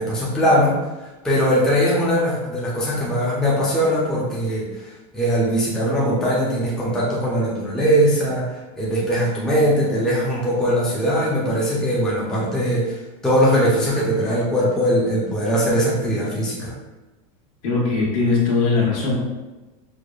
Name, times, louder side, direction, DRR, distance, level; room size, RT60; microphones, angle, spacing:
voice 1, 0.0-16.7, equal, 5° left, -7 dB, 0.4 m, -21 dB
voice 2, 17.6-19.1, left 4 dB, 70° left, -4 dB, 1.2 m, -20 dB
4.8 x 2.1 x 2.3 m, 1.1 s
supercardioid pair, 165°, 18 cm